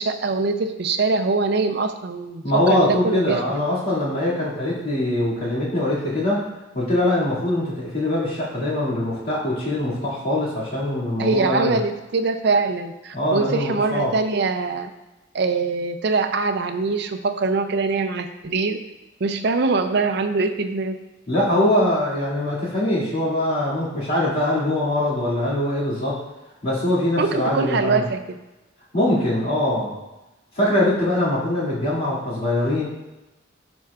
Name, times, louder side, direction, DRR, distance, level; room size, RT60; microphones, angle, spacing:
voice 1, 0.0-3.4 11.2-14.9 15.3-18.8 19.2-21.0 27.2-28.4, right 3 dB, 55° right, 7 dB, 0.5 m, -23 dB
voice 2, 2.4-6.5 6.7-11.8 13.1-14.1 21.3-26.2 26.6-28.0 28.9-29.9 30.5-32.8, left 1 dB, 45° left, -8 dB, 2.2 m, -22 dB
11.0 x 4.6 x 2.4 m, 1.0 s
head